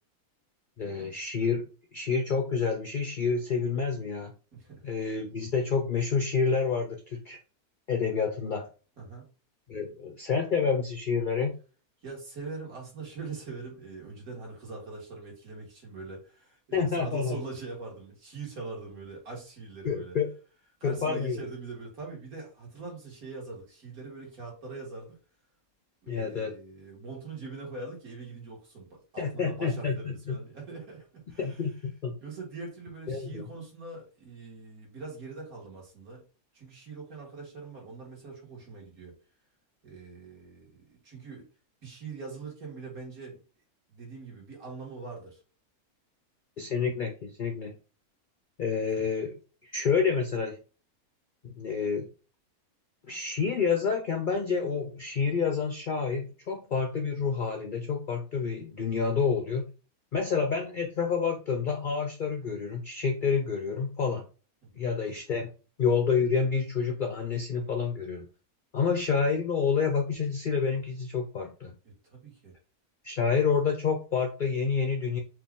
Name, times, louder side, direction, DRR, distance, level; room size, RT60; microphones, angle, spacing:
voice 1, 0.8-4.3 4.8-7.4 7.9-8.7 9.7-11.6 16.7-17.4 19.8-20.4 20.8-21.4 26.1-26.6 29.2-30.4 31.4-32.1 33.1-33.4 46.6-47.7 48.6-50.6 51.4-52.1 53.1-59.7 60.1-64.2 64.7-65.5 65.8-68.3 68.7-71.7 73.0-75.2, left 5 dB, 70° left, 0.4 m, -28 dB
voice 2, 4.5-4.8 9.0-9.3 12.0-20.2 20.8-25.2 26.0-31.7 32.2-36.2 36.5-39.2 39.8-41.5 41.8-43.4 43.9-45.4 48.7-48.9 64.6-64.9 71.8-72.5, right 4 dB, 75° right, 2.1 m, -42 dB
4.5 x 2.4 x 3.6 m
omnidirectional pair, 1.6 m